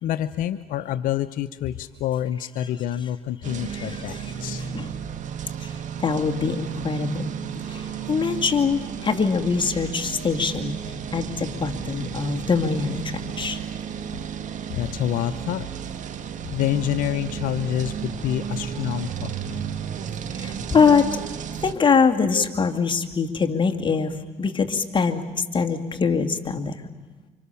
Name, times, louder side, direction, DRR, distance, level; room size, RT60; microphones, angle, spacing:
voice 1, 0.0-4.6 14.7-15.7 16.5-19.3 22.3-22.4, left 11 dB, 80° left, 11 dB, 0.8 m, -27 dB
sound 1, 3.4-21.7, right 8 dB, 65° right, 1.8 m, -33 dB
voice 2, 3.7-4.3 4.6-4.9 5.6-5.7 6.0-7.4 7.7-10.7 11.1-13.6 20.3-21.2 21.6-26.8, left 5 dB, 35° left, 3 dB, 2.5 m, -23 dB
29.0 x 25.5 x 7.1 m, 1.3 s
cardioid pair, 80°, 14 cm